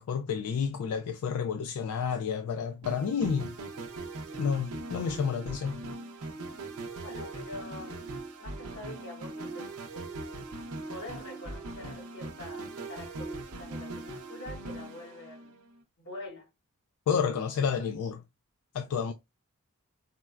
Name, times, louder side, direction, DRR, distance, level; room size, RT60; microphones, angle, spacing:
voice 1, 0.0-3.5 4.4-5.8 17.1-18.2 18.7-19.1, left 6 dB, 85° left, 0.3 m, -30 dB
sound 1, 2.8-15.8, right 2 dB, 80° right, 0.6 m, -40 dB
voice 2, 7.0-8.1 8.4-10.1 10.9-15.6 16.0-16.5, left 2 dB, 55° left, 1.3 m, -45 dB
4.2 x 2.1 x 2.2 m
head